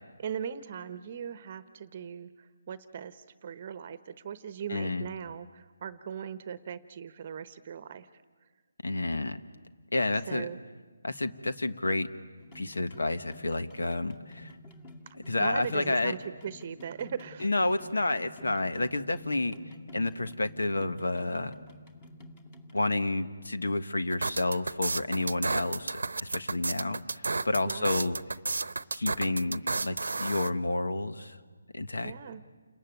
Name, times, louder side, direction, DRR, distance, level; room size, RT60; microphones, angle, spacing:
voice 1, 0.2-8.1 10.3-10.6 15.1-17.5 27.6-28.0 32.0-32.4, right 8 dB, 35° right, 13 dB, 0.9 m, -39 dB
voice 2, 4.7-5.1 8.8-9.4 9.9-10.4 11.0-12.1 12.5-14.5 15.3-16.1 17.4-19.5 19.9-21.5 22.7-28.1 28.9-31.4 31.7-32.1, left 2 dB, 90° left, 9 dB, 1.4 m, -30 dB
sound 1, 12.4-22.7, left 1 dB, 20° left, 2.2 m, -50 dB
sound 2, 24.1-30.5, right 3 dB, 85° right, 0.9 m, -32 dB
29.0 x 21.0 x 9.4 m, 1.5 s
hypercardioid pair, 165°, 0 cm